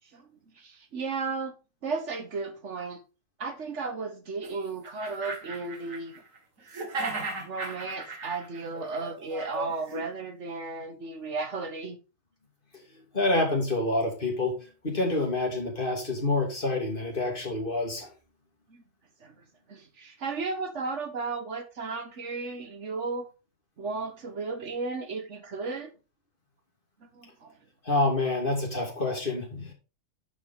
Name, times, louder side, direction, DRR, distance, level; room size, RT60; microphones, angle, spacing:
voice 1, 0.6-1.5 1.8-3.0 3.4-6.1 7.1-12.0 18.7-18.8 19.2-19.3 19.7-23.3 23.8-25.9 27.2-27.5, right 4 dB, 65° right, 1.5 m, -34 dB
sound 1, 4.4-4.5 4.8-6.4 6.6-10.0, right 2 dB, 85° right, 2.1 m, -36 dB
voice 2, 13.1-14.6 14.8-18.1 27.8-29.7, left 2 dB, 40° left, 2.9 m, -27 dB
11.0 x 5.2 x 3.9 m
omnidirectional pair, 1.3 m